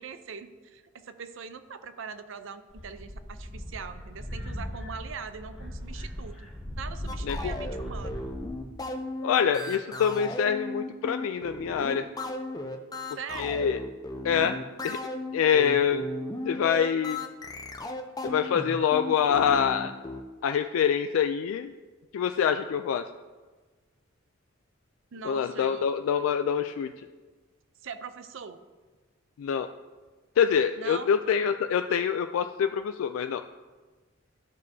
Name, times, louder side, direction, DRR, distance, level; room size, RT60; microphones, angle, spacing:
voice 1, 0.0-6.5 6.8-8.3 13.1-13.6 25.1-25.9 27.8-28.6 30.8-31.1, right 5 dB, 70° right, 10 dB, 0.5 m, -41 dB
sound 1, 2.7-8.6, equal, ahead, 2.0 m, -38 dB
sound 2, 7.1-20.2, left 2 dB, 20° left, 0.5 m, -36 dB
voice 2, 7.2-7.5 9.2-12.1 13.4-13.8 14.2-14.6 14.8-15.0 15.3-16.0 16.5-17.2 18.2-19.9 20.4-21.7 22.1-23.0 25.2-26.9 29.4-29.7 30.4-33.4, left 7 dB, 85° left, 8 dB, 0.3 m, -25 dB
13.0 x 5.3 x 2.7 m, 1.3 s
head